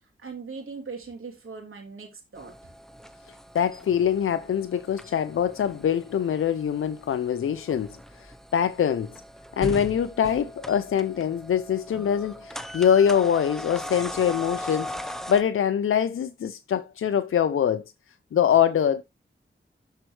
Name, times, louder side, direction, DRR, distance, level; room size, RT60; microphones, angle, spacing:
voice 1, 0.2-2.7, right 4 dB, 80° right, 3.0 m, -40 dB
sound 1, 2.4-15.4, left 1 dB, ahead, 0.8 m, -39 dB
voice 2, 3.5-9.1 9.6-17.8 18.3-19.0, left 8 dB, 85° left, 0.5 m, -24 dB
12.5 x 4.5 x 3.2 m
cardioid pair, 55°, 21 cm